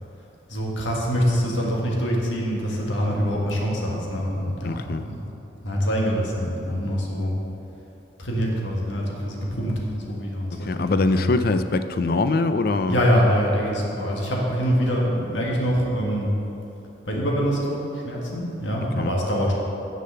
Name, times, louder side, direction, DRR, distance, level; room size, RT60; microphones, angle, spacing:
voice 1, 0.5-5.2 5.6-7.3 8.2-11.3 12.9-16.3 17.0-19.5, equal, 85° left, -2 dB, 1.7 m, -24 dB
voice 2, 4.6-5.1 10.5-13.0 19.0-19.1, left 3 dB, 55° left, 10 dB, 0.4 m, -23 dB
7.5 x 6.7 x 6.7 m, 3.0 s
head